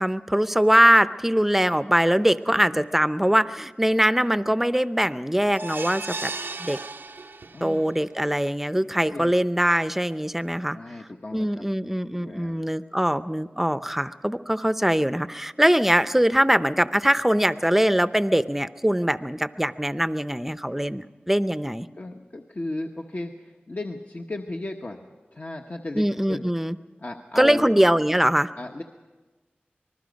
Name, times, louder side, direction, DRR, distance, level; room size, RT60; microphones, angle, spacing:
voice 1, 0.0-6.3 6.6-6.8 7.6-10.8 11.3-21.9 26.0-26.8 27.4-28.5, equal, 5° right, 13 dB, 0.7 m, -22 dB
voice 2, 2.5-2.8 7.5-7.8 8.9-9.3 10.7-11.6 12.1-12.6 22.0-26.5 27.0-27.7 28.6-28.8, left 2 dB, 50° left, 2 dB, 1.1 m, -35 dB
sound 1, 5.5-7.8 8.3-8.4 8.7-8.8, right 3 dB, 75° right, 0.6 m, -35 dB
26.0 x 20.0 x 5.3 m, 1.3 s
wide cardioid pair, 60°, 4 cm